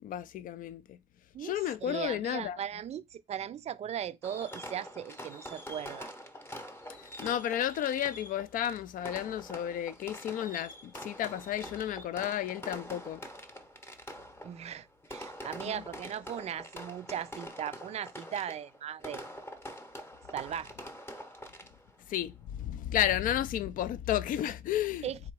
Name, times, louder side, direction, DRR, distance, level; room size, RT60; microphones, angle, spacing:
voice 1, 0.0-1.0 1.4-2.6 7.2-13.2 15.7-15.8 22.1-25.1, left 11 dB, 55° left, 0.4 m, -32 dB
voice 2, 1.3-6.1 14.4-19.3 20.3-20.7 25.0-25.2, right 9 dB, 40° right, 0.4 m, -38 dB
Fireworks, 4.2-22.0, equal, 15° left, 0.8 m, -45 dB
3.7 x 2.9 x 4.6 m
cardioid pair, 110°, 17 cm